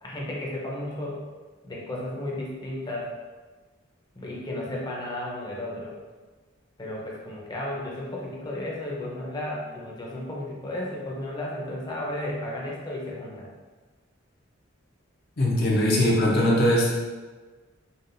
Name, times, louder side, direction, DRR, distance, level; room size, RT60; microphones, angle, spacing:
voice 1, 0.0-1.2 1.6-3.1 4.1-5.9 6.8-13.5, left 1 dB, 20° left, -4 dB, 0.8 m, -33 dB
voice 2, 15.4-16.9, left 1 dB, 55° left, -4 dB, 0.8 m, -21 dB
5.6 x 2.4 x 2.6 m, 1.3 s
head